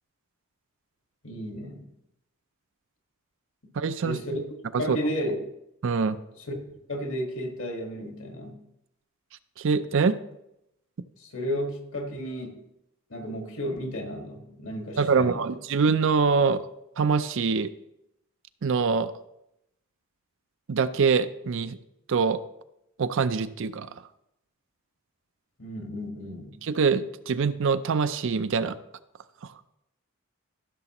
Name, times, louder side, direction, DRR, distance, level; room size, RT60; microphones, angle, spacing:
voice 1, 1.2-1.9 3.6-3.7 4.0-4.4 4.8-5.5 6.4-6.6 6.9-8.6 11.2-12.6 13.1-15.5 25.6-26.6, equal, 60° left, 3 dB, 1.7 m, -33 dB
voice 2, 3.8-4.2 4.7-5.0 5.8-6.2 9.6-10.2 15.0-16.6 17.0-17.7 18.6-19.1 20.7-21.8 22.1-22.4 23.0-23.9 26.6-28.8, right 5 dB, 60° right, 12 dB, 0.4 m, -24 dB
14.5 x 6.7 x 3.0 m, 0.83 s
head